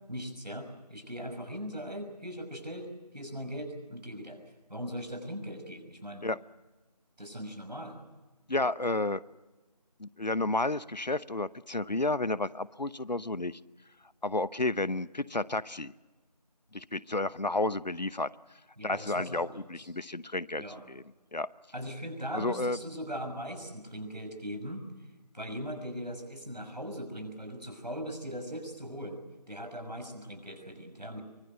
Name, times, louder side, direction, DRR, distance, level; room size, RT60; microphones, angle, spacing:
voice 1, 0.1-4.4 4.7-6.3 7.2-8.0 18.8-19.4 19.8-19.9 20.6-20.8 21.7-25.1 25.3-29.2 29.5-31.2, equal, 85° right, 5 dB, 6.1 m, -39 dB
voice 2, 8.5-9.2 10.0-13.6 14.2-15.9 16.7-18.3 18.8-21.0 21.3-21.5 22.3-22.8, left 2 dB, 90° left, 19 dB, 0.8 m, -31 dB
24.0 x 19.0 x 8.0 m, 1.2 s
figure-of-eight pair, 175°, 21 cm